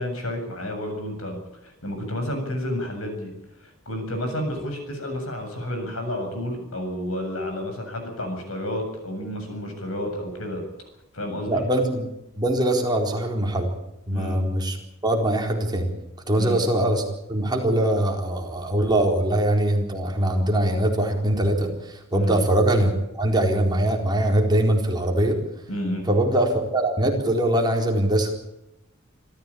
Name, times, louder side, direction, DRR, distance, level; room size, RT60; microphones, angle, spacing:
voice 1, 0.0-1.4 1.6-3.3 3.6-10.6 11.1-11.6 14.1-14.4 16.4-16.6 22.1-22.4 25.7-26.1, left 1 dB, 85° left, 5 dB, 7.6 m, -30 dB
voice 2, 11.5-12.1 12.4-13.7 14.1-14.8 15.0-15.9 16.3-17.0 17.3-25.4 26.1-28.3, right 1 dB, 20° right, 1 dB, 4.2 m, -22 dB
26.5 x 14.5 x 8.6 m, 0.89 s
head